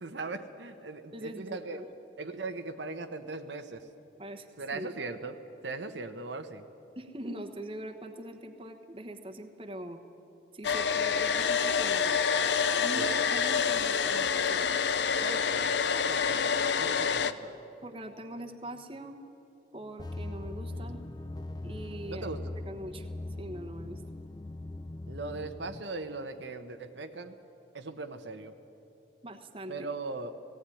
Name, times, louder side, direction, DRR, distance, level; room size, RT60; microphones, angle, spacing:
voice 1, 0.0-1.8 2.2-3.9 4.6-6.6 12.9-13.2 15.2-15.7 16.1-17.5 20.7-21.0 22.1-22.5 25.1-27.3 27.7-28.5 29.7-30.4, right 3 dB, 85° right, 7 dB, 1.1 m, -39 dB
voice 2, 1.1-1.8 4.2-4.9 7.0-10.0 10.5-12.3 12.7-14.8 17.0-17.1 17.8-19.2 19.7-21.0 21.6-22.3 22.6-23.1 23.4-24.0 29.2-29.9, right 1 dB, 30° right, 4 dB, 1.2 m, -42 dB
Domestic sounds home sounds, 10.6-17.3, left 6 dB, 75° left, 0.7 m, -27 dB
sound 1, 20.0-25.8, left 2 dB, 20° left, 0.4 m, -40 dB
18.0 x 16.0 x 9.9 m, 2.8 s
head